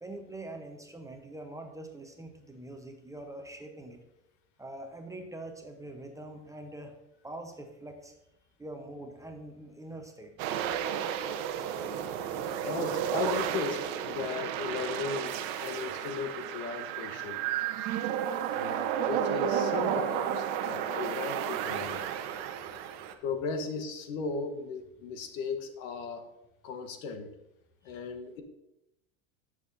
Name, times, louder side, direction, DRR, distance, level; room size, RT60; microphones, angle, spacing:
voice 1, 0.0-4.0 4.6-6.9 7.2-8.1 8.6-10.3 27.9-28.0, right 1 dB, 10° right, 4 dB, 0.8 m, -44 dB
sound 1, 10.4-23.1, right 9 dB, 55° right, 0.9 m, -32 dB
voice 2, 12.6-17.4 18.5-22.0 23.2-26.3 26.6-27.3 27.8-28.4, left 5 dB, 70° left, 7 dB, 1.2 m, -36 dB
10.5 x 6.4 x 2.6 m, 0.88 s
supercardioid pair, 105°, 41 cm